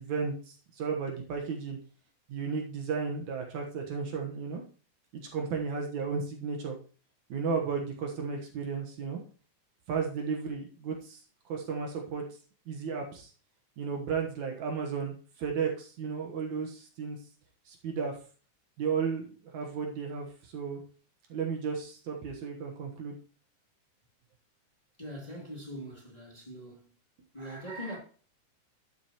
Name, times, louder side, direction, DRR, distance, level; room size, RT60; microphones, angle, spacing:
voice 1, 0.0-1.8 2.3-4.6 5.1-6.8 7.3-9.2 9.9-12.2 12.7-13.3 13.8-17.2 17.7-18.2 18.8-20.8 21.3-23.2, right 5 dB, 65° right, 2.5 m, -34 dB
voice 2, 25.0-26.8 27.3-28.0, equal, 15° left, 2.2 m, -41 dB
12.0 x 7.4 x 3.0 m
omnidirectional pair, 3.8 m